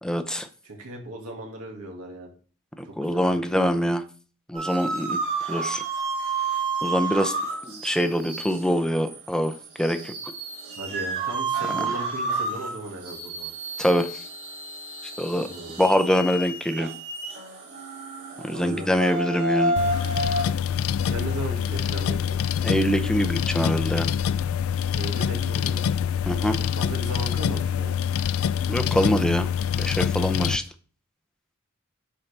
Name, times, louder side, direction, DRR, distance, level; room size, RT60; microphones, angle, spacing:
voice 1, 0.0-0.5 3.0-4.0 4.5-5.2 5.5-5.8 6.8-7.3 7.6-10.1 11.7-11.9 13.8-14.2 15.0-15.5 15.8-16.9 18.4-19.7 22.6-24.1 26.3-26.6 28.7-29.5 29.8-30.6, equal, 5° left, 7 dB, 0.6 m, -24 dB
voice 2, 0.6-2.3 2.8-3.8 10.8-13.5 15.4-15.9 18.5-19.0 21.0-22.4 24.9-25.8 26.5-28.0, right 1 dB, 85° right, 1 dB, 2.0 m, -37 dB
sound 1, 4.5-20.4, right 3 dB, 60° right, 4.3 m, -30 dB
sound 2, 19.8-30.6, left 8 dB, 65° left, 0.3 m, -25 dB
10.5 x 4.6 x 3.4 m, 0.40 s
head